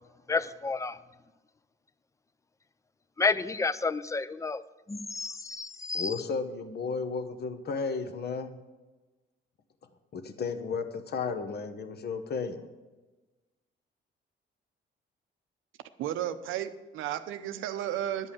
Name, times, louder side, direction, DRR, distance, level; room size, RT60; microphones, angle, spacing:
voice 1, 0.3-1.0 3.2-4.6 4.9-6.1, left 4 dB, 15° left, 16 dB, 0.4 m, -30 dB
voice 2, 5.9-8.6 10.1-12.6, left 4 dB, 55° left, 8 dB, 1.1 m, -33 dB
voice 3, 16.0-18.3, right 11 dB, 90° right, 11 dB, 0.7 m, -33 dB
10.5 x 5.5 x 8.5 m, 1.2 s
cardioid pair, 90°, 20 cm